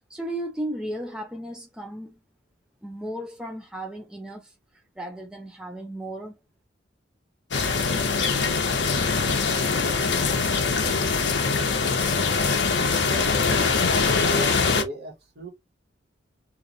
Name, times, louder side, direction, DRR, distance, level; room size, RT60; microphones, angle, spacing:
voice 1, 0.1-2.2 2.8-4.5 5.0-6.4, right 1 dB, 5° right, 0.5 m, -35 dB
sound 1, 7.5-14.8, left 4 dB, 70° left, 0.7 m, -23 dB
voice 2, 10.8-11.1 13.0-15.5, right 2 dB, 55° right, 1.2 m, -37 dB
3.0 x 2.5 x 3.8 m
head